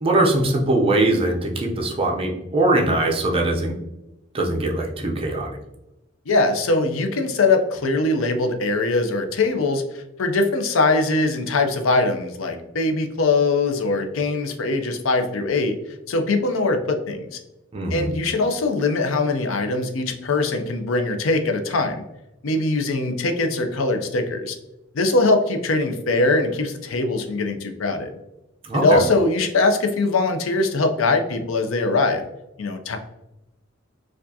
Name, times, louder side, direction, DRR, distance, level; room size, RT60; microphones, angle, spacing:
voice 1, 0.0-3.8 4.3-5.5 17.7-18.1 28.6-29.0, right 2 dB, 30° right, 1 dB, 0.6 m, -21 dB
voice 2, 6.3-15.7 16.1-17.4 17.9-22.0 22.4-24.6 24.9-28.1 28.7-32.2 32.6-33.0, left 3 dB, 85° left, 6 dB, 0.5 m, -22 dB
4.5 x 2.4 x 2.7 m, 0.94 s
head